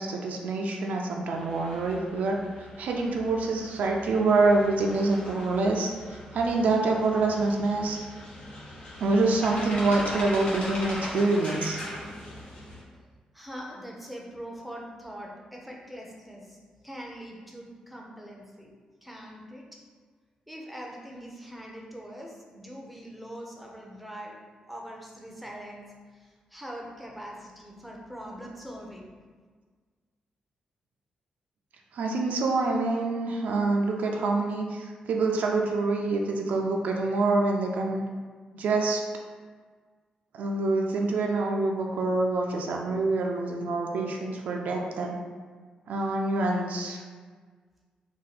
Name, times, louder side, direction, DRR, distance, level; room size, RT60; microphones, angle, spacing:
voice 1, 0.0-2.4 2.8-8.0 9.0-11.8 31.9-38.0 38.5-39.0 40.3-45.2 45.9-47.0, right 3 dB, 80° right, 1 dB, 0.4 m, -26 dB
sound 1, 1.3-12.8, left 1 dB, 70° left, 1.0 m, -40 dB
voice 2, 13.3-16.6 16.8-18.7 19.0-19.6 20.5-24.4 24.7-26.0 26.5-29.1, equal, ahead, -2 dB, 0.6 m, -42 dB
2.7 x 2.2 x 4.0 m, 1.5 s
cardioid pair, 100°, 3 cm